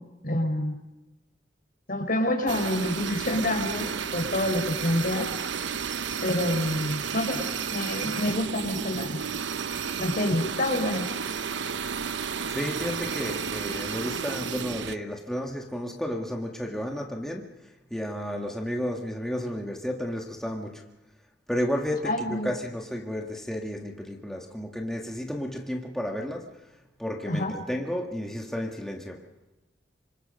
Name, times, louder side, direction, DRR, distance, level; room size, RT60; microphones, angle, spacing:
voice 1, 0.2-0.8 1.9-5.3 6.2-9.2 10.0-11.1 22.0-22.6 27.3-27.5, left 1 dB, 55° left, 5.2 m, -27 dB
sound 1, 2.5-15.0, right 6 dB, 85° right, 0.8 m, -32 dB
voice 2, 12.5-17.5 17.9-20.8 21.5-22.1 22.4-26.5 27.0-29.2, equal, 5° left, 1.8 m, -32 dB
28.5 x 26.0 x 5.3 m
head